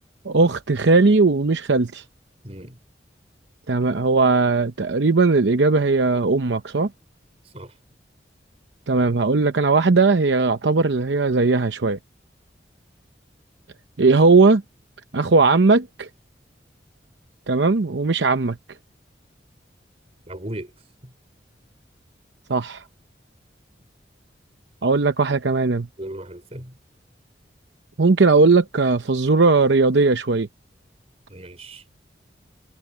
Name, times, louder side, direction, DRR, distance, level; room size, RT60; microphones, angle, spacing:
voice 1, 0.2-2.0 3.7-6.9 8.9-12.0 14.0-14.6 15.1-16.1 17.5-18.6 22.5-22.8 24.8-25.9 28.0-30.5, right 3 dB, 80° right, 0.8 m, -18 dB
voice 2, 2.4-2.8 7.5-7.7 20.3-20.7 21.0-21.1 26.0-26.7 31.3-31.8, right 1 dB, 35° right, 4.7 m, -36 dB
head